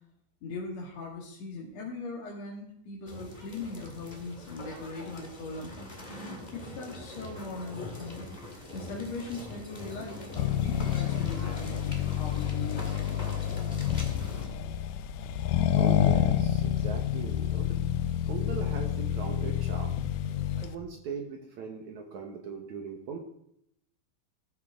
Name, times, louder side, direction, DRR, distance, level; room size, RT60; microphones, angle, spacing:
voice 1, 0.4-5.7 6.5-8.2 8.7-13.0, left 3 dB, 50° left, -3 dB, 2.8 m, -40 dB
sound 1, 3.1-14.5, left 1 dB, 20° left, 1.2 m, -42 dB
Accelerating revving vroom, 10.4-20.8, left 10 dB, 80° left, 1.9 m, -28 dB
voice 2, 15.7-17.8 18.3-20.0 20.6-23.2, right 5 dB, 65° right, 3 dB, 2.1 m, -39 dB
15.5 x 13.0 x 3.6 m, 0.75 s
omnidirectional pair, 4.4 m